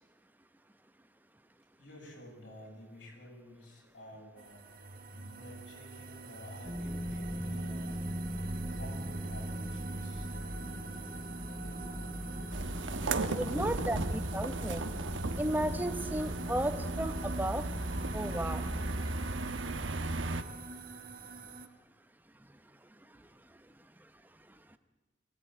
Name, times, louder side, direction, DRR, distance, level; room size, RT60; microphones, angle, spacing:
voice 1, 1.8-4.6 5.1-8.0 8.6-10.3 11.6-12.4 13.2-14.3 23.0-23.1, left 1 dB, 75° left, -1 dB, 8.0 m, -50 dB
sound 1, 4.4-21.7, right 3 dB, 45° right, 1.4 m, -44 dB
sound 2, 6.6-19.0, equal, 10° left, 2.1 m, -41 dB
sound 3, 12.5-20.4, right 2 dB, 85° right, 1.3 m, -36 dB
voice 2, 13.3-14.0 14.3-14.9 15.4-17.6 18.1-18.6, right 1 dB, 10° right, 9 dB, 1.0 m, -33 dB
23.5 x 17.0 x 8.9 m, 1.2 s
head